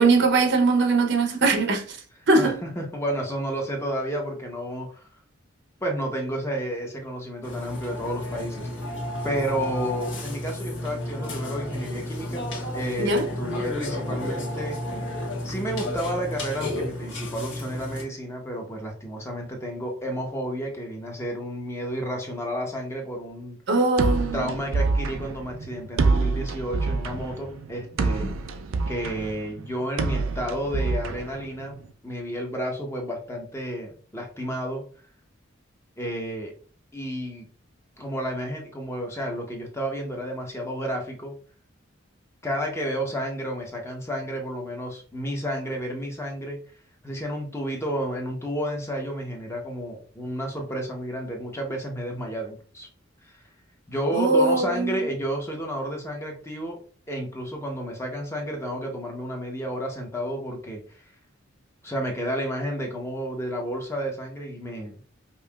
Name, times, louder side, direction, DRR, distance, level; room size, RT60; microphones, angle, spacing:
voice 1, 0.0-2.0 2.3-2.6 13.0-13.3 23.7-24.5 28.2-28.3 54.1-55.0, right 3 dB, 60° right, 0.8 m, -21 dB
voice 2, 2.3-5.0 5.8-8.9 9.2-14.8 15.4-23.6 24.3-28.3 28.9-31.8 32.0-34.8 36.0-36.5 36.9-37.5 38.0-41.4 42.4-46.6 47.0-52.9 53.3-53.4 53.9-56.8 57.1-61.0 61.8-65.0, equal, 15° left, 0.7 m, -31 dB
Burping eructation, 7.4-18.0, left 1 dB, 65° left, 1.5 m, -32 dB
sound 1, 24.0-31.9, right 3 dB, 85° right, 0.5 m, -27 dB
5.4 x 2.7 x 2.3 m
head